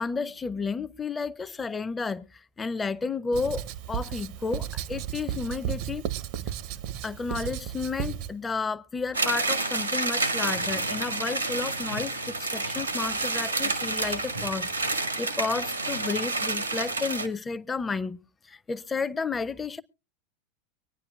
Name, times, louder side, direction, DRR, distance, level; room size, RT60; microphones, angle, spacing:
voice 1, 0.0-2.3 2.6-6.1 7.0-18.2 18.5-19.8, left 4 dB, 15° left, 0.6 m, -32 dB
Writing, 3.3-8.3, right 10 dB, 50° right, 0.6 m, -34 dB
sound 1, 9.1-17.3, right 3 dB, 85° right, 1.1 m, -29 dB
24.0 x 9.8 x 2.4 m
figure-of-eight pair, 85°, 0 cm